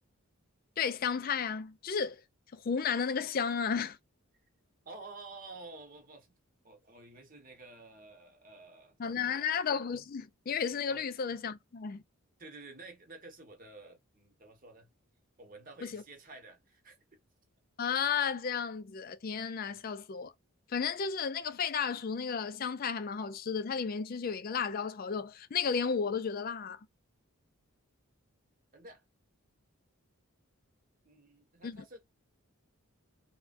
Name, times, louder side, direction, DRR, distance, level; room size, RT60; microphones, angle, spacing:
voice 1, 0.8-2.2 2.5-4.0 9.0-12.0 15.8-16.0 17.8-20.3 20.7-26.9 31.6-31.8, left 6 dB, 40° left, 0.3 m, -33 dB
voice 2, 4.8-6.4 6.6-9.5 10.9-11.0 12.4-14.9 15.4-17.0 19.6-19.8 28.7-29.0 31.0-32.0, right 3 dB, 40° right, 1.0 m, -51 dB
3.3 x 2.1 x 2.5 m
head